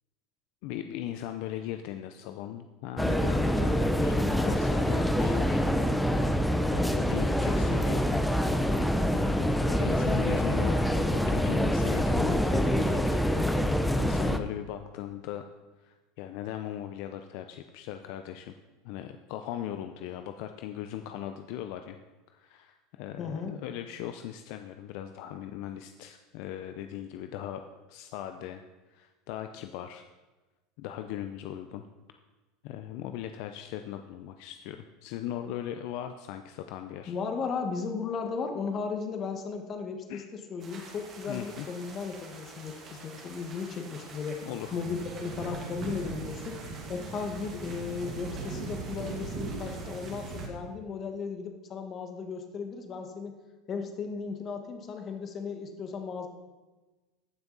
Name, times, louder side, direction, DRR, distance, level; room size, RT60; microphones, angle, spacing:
voice 1, 0.6-5.6 6.6-8.2 9.1-15.4 15.8-18.5 18.8-22.0 22.3-27.6 27.9-28.6 28.9-30.0 30.8-31.9 32.6-37.1 40.1-40.3 41.3-41.7 44.5-44.8, left 11 dB, 65° left, 8 dB, 0.5 m, -39 dB
sound 1, 3.0-14.4, equal, 5° left, 0.6 m, -26 dB
voice 2, 23.2-23.5 37.1-46.6 46.9-53.3 53.7-56.3, left 5 dB, 35° left, 5 dB, 1.4 m, -35 dB
sound 2, 40.6-50.5, right 4 dB, 35° right, 2.1 m, -41 dB
14.5 x 6.0 x 4.0 m, 1.2 s
supercardioid pair, 125°, 0 cm